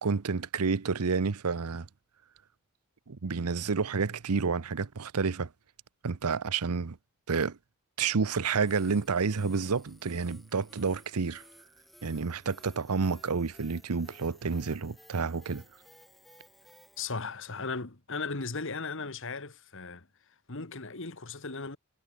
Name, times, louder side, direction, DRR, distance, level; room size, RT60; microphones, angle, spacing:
voice 1, 0.0-1.9 3.1-5.5 6.0-7.0 7.3-7.6 8.0-11.4 12.0-15.6, right 5 dB, 90° right, 0.8 m, -29 dB
sound 1, 8.7-17.0, equal, ahead, 7.2 m, -57 dB
voice 2, 17.0-20.1 20.5-21.8, left 4 dB, 60° left, 1.9 m, -37 dB
head